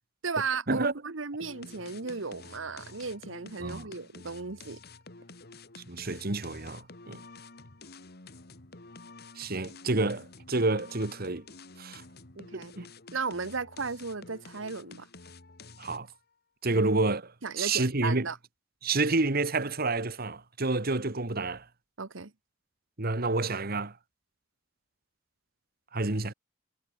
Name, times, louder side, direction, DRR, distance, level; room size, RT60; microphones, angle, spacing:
voice 1, 0.2-4.8 12.4-12.7 13.1-15.1 16.7-16.8 17.4-18.4 22.0-22.3, right 4 dB, 85° right, 1.3 m, -35 dB
sound 1, 1.4-16.2, left 3 dB, 55° left, 2.3 m, -50 dB
voice 2, 5.9-7.2 9.4-11.4 11.8-12.0 12.5-12.9 15.8-16.1 16.6-18.3 18.8-21.6 23.0-23.9 25.9-26.3, right 3 dB, 50° right, 1.8 m, -29 dB
head